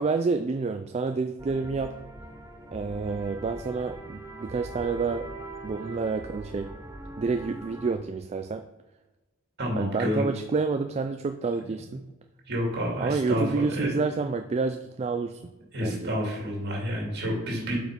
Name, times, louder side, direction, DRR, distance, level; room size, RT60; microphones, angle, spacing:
voice 1, 0.0-2.0 2.7-5.3 5.6-6.7 7.2-8.7 9.8-12.0 13.0-15.5 15.8-16.1, right 4 dB, 30° right, 7 dB, 0.3 m, -29 dB
sound 1, 1.4-7.9, right 2 dB, 15° right, 0.7 m, -41 dB
voice 2, 9.6-10.2 12.5-13.9 15.7-17.8, equal, 50° right, -1 dB, 2.6 m, -29 dB
7.8 x 5.0 x 5.1 m, 1.1 s
head